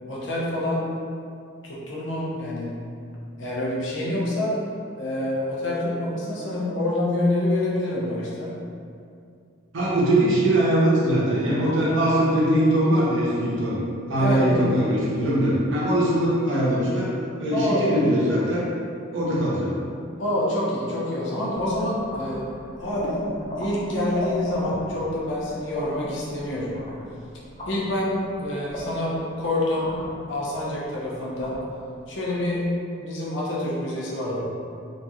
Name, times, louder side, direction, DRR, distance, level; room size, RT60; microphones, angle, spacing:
voice 1, 0.1-0.9 1.6-2.8 3.4-4.6 5.0-8.6 11.8-12.0 14.2-14.6 17.5-17.9 20.2-22.5 22.8-23.2 23.6-26.8 27.7-29.9 30.3-31.5 32.1-32.7 33.0-34.4, left 1 dB, 60° left, -6 dB, 0.7 m, -27 dB
voice 2, 9.7-13.8 14.1-17.1 17.4-18.6 19.1-19.7, right 1 dB, 65° right, -7 dB, 0.7 m, -21 dB
sound 1, 21.5-32.6, left 1 dB, 30° left, 0.3 m, -38 dB
2.9 x 2.6 x 2.4 m, 2.4 s
head